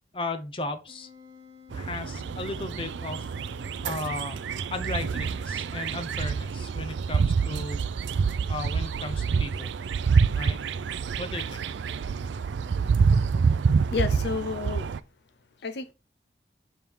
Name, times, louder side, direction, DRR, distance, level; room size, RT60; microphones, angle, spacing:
voice 1, 0.1-1.1 1.7-3.3 3.8-4.4 4.7-7.8 8.5-9.7 10.4-10.6 11.2-11.6, left 2 dB, 30° left, 0.8 m, -35 dB
Wind instrument woodwind instrument, 0.9-6.3, left 6 dB, 20° right, 1.5 m, -53 dB
sound 1, 1.7-15.0, right 5 dB, 80° right, 0.4 m, -27 dB
voice 2, 13.9-14.9 15.6-15.9, left 4 dB, 65° left, 0.5 m, -30 dB
7.1 x 3.6 x 4.6 m
head